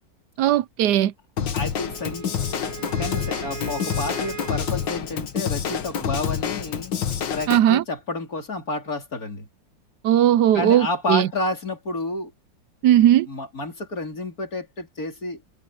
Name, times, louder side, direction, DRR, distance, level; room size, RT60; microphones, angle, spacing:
voice 1, 0.4-1.1 7.5-7.8 10.0-11.3 12.8-13.3, right 11 dB, 70° right, 1.1 m, -18 dB
Drum kit / Drum, 1.4-7.6, left 8 dB, 75° left, 2.1 m, -27 dB
voice 2, 1.5-2.5 3.0-6.9 7.3-9.5 10.5-12.3 13.3-15.4, left 2 dB, 50° left, 4.4 m, -30 dB
Wind instrument woodwind instrument, 1.8-5.0, right 9 dB, 20° right, 1.8 m, -38 dB
omnidirectional pair, 2.0 m